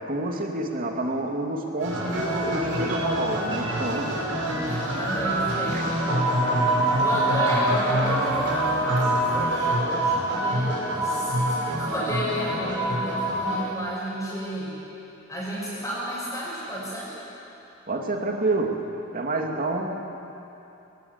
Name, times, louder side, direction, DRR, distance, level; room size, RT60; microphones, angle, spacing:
voice 1, 0.0-4.2 5.7-5.8 8.4-8.5 17.9-18.8 19.1-20.1, right 2 dB, 45° right, 2 dB, 2.5 m, -28 dB
sound 1, 1.8-13.6, right 1 dB, 75° right, 6.2 m, -25 dB
voice 2, 4.6-6.2 7.0-14.7 15.3-17.1, equal, 15° left, -9 dB, 6.7 m, -32 dB
22.5 x 19.0 x 8.3 m, 2.8 s
head